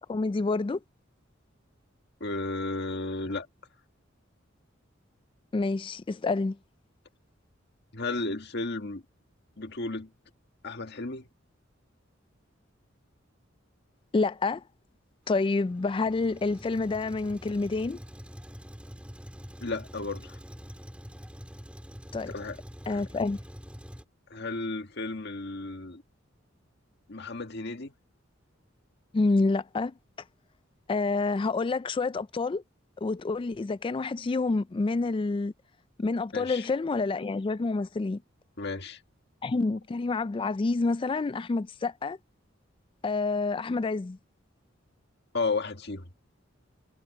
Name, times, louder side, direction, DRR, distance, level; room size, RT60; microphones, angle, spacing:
voice 1, 0.1-0.8 5.5-6.6 14.1-14.6 15.3-18.0 22.1-22.3 22.9-23.4 29.1-29.9 30.9-32.6 33.0-35.5 36.0-38.2 39.4-42.2 43.0-44.2, left 3 dB, 25° left, 0.3 m, -28 dB
voice 2, 2.2-3.5 7.9-9.0 9.6-10.1 10.6-11.2 19.6-20.4 22.3-22.6 22.9-23.0 24.3-26.0 27.1-27.9 36.3-36.7 38.6-39.0 45.3-46.1, left 3 dB, 55° left, 1.8 m, -33 dB
Truck, 15.3-24.0, equal, 5° right, 2.4 m, -45 dB
head